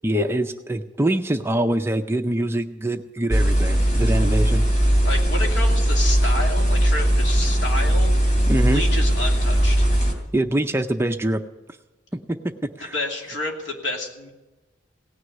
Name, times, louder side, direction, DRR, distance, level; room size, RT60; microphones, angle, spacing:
voice 1, 0.0-4.6 8.5-8.8 10.3-11.4 12.1-12.9, right 1 dB, 10° right, 6 dB, 0.4 m, -24 dB
sound 1, 3.3-10.1, right 1 dB, 40° left, 3.0 m, -19 dB
voice 2, 5.0-8.1 8.7-9.9 12.9-14.3, left 2 dB, 65° left, 0 dB, 2.7 m, -29 dB
17.5 x 6.4 x 9.5 m, 1.1 s
head